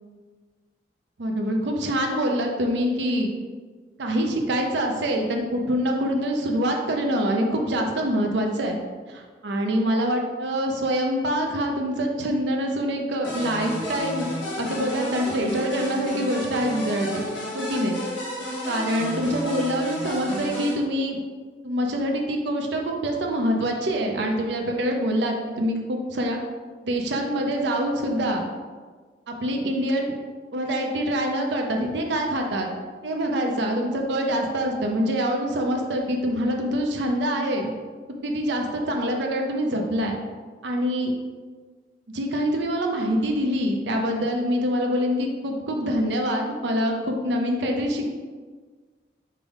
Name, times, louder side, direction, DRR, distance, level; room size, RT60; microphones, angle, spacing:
voice 1, 1.2-3.3 4.0-8.8 9.1-14.3 14.6-17.2 17.5-18.0 18.7-21.2 21.6-26.4 26.8-28.5 29.3-30.1 30.5-32.7 33.0-37.7 38.2-40.2 40.6-41.1 42.1-48.1, equal, 65° right, 2 dB, 0.5 m, -25 dB
sound 1, 13.2-20.7, left 1 dB, 80° left, 1.2 m, -32 dB
5.4 x 2.1 x 4.8 m, 1.5 s
head